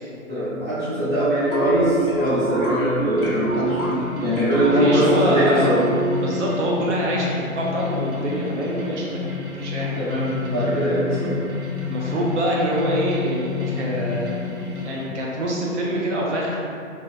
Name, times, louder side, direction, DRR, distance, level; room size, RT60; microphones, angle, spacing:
voice 1, 0.3-5.8 10.0-11.3, equal, 10° right, -18 dB, 0.8 m, -22 dB
sound 1, 1.5-6.3, right 2 dB, 45° left, 0.5 m, -26 dB
sound 2, 3.1-15.1, left 5 dB, 90° right, 0.7 m, -30 dB
voice 2, 4.6-5.8 6.1-9.3 9.6-10.0 11.9-14.4 14.8-16.6, right 1 dB, 60° right, -3 dB, 0.5 m, -25 dB
2.5 x 2.1 x 2.5 m, 2.4 s
figure-of-eight pair, 130°, 41 cm